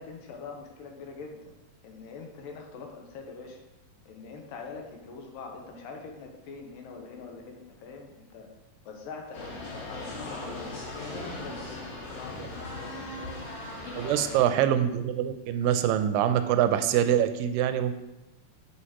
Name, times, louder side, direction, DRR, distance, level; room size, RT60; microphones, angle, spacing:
voice 1, 0.0-1.5 1.8-3.6 4.1-8.5 8.9-13.6 13.9-14.5, left 4 dB, 80° left, 2 dB, 2.6 m, -43 dB
sound 1, 9.3-14.4, left 2 dB, 65° left, 2.6 m, -38 dB
voice 2, 13.9-17.9, right 10 dB, 85° right, 10 dB, 2.2 m, -24 dB
9.8 x 5.6 x 3.0 m, 0.99 s
omnidirectional pair, 3.9 m